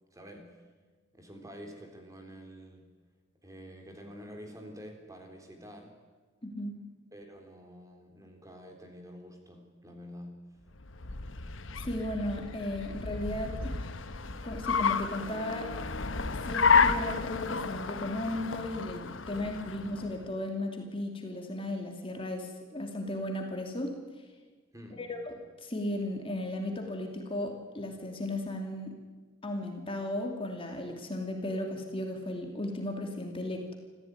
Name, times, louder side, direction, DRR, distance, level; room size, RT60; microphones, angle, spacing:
voice 1, 0.1-0.5 1.1-2.9 3.4-5.9 7.1-10.4 19.4-19.6 24.7-25.0, equal, 15° right, 3 dB, 3.7 m, -48 dB
voice 2, 6.4-6.8 11.8-13.8 14.4-15.7 16.3-23.9 25.0-29.0 29.4-33.7, left 1 dB, 30° left, 3 dB, 2.7 m, -35 dB
Car, 10.7-20.3, left 5 dB, 70° left, 1.2 m, -31 dB
27.5 x 15.0 x 9.5 m, 1.4 s
head